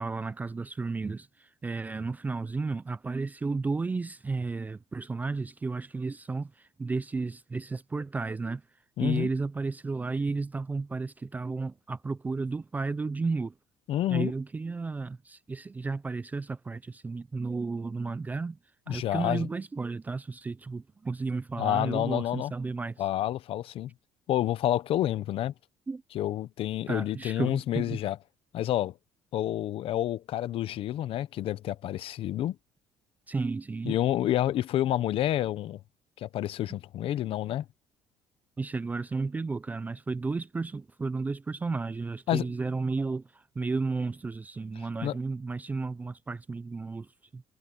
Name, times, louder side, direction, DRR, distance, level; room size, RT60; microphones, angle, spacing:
voice 1, 0.0-8.6 9.0-13.5 14.1-18.6 18.9-23.0 25.9-26.0 26.9-28.0 33.3-34.0 38.6-47.4, right 4 dB, 15° right, 0.4 m, -33 dB
voice 2, 9.0-9.3 13.9-14.3 18.9-19.5 21.6-22.5 23.0-23.9 24.3-25.5 26.1-28.2 28.5-28.9 29.3-32.6 33.9-35.8 36.2-37.6 42.3-42.5 45.0-45.2, left 12 dB, 55° left, 0.8 m, -29 dB
cardioid pair, 160°, 11 cm